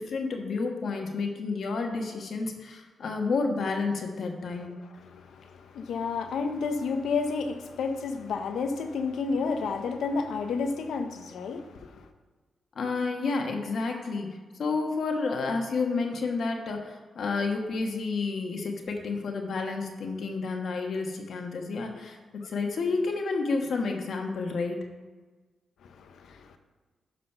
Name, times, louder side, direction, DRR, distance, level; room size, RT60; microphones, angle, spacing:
voice 1, 0.0-4.7 12.7-24.8, left 4 dB, 70° left, 1.3 m, -30 dB
voice 2, 4.8-12.1 25.8-26.6, left 4 dB, 85° left, 0.8 m, -31 dB
11.5 x 4.2 x 5.5 m
cardioid pair, 85°, 0 cm